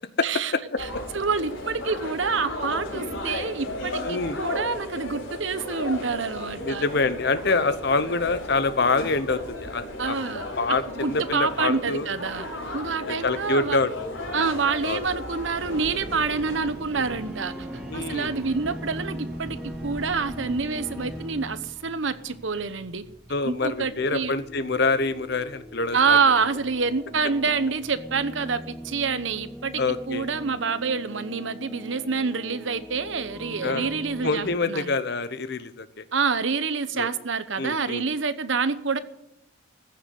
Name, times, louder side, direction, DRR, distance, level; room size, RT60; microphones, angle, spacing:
voice 1, 0.2-0.5 0.8-0.9 1.1-6.8 10.0-10.4 10.9-13.8 14.3-17.7 17.9-23.0 23.4-24.3 25.9-29.8 30.1-34.9 36.1-39.0, right 5 dB, 70° right, 1.0 m, -27 dB
sound 1, 0.8-16.7, left 1 dB, 80° left, 5.5 m, -34 dB
voice 2, 4.0-4.4 6.6-10.2 10.6-12.2 13.0-13.9 14.8-15.0 17.9-18.3 23.3-26.2 29.8-30.3 33.6-33.9 34.2-36.0 36.9-37.1 37.6-38.0, left 3 dB, 55° left, 1.0 m, -26 dB
sound 2, 15.6-21.3, right 1 dB, 55° right, 1.4 m, -42 dB
sound 3, 16.9-34.6, equal, 5° right, 0.7 m, -40 dB
15.0 x 7.0 x 10.0 m
head